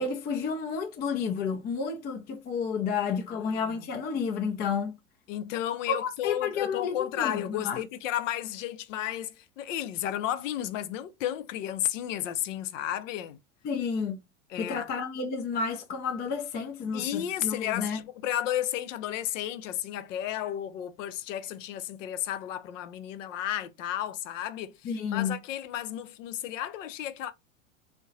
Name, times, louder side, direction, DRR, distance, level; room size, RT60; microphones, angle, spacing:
voice 1, 0.0-4.9 5.9-7.8 13.6-14.2 14.6-18.0 24.8-25.4, left 6 dB, 25° left, 0.4 m, -31 dB
voice 2, 3.3-3.9 5.3-13.4 14.5-14.9 16.9-27.3, left 11 dB, 70° left, 0.6 m, -33 dB
3.6 x 2.2 x 2.7 m
hypercardioid pair, 100°, 40 cm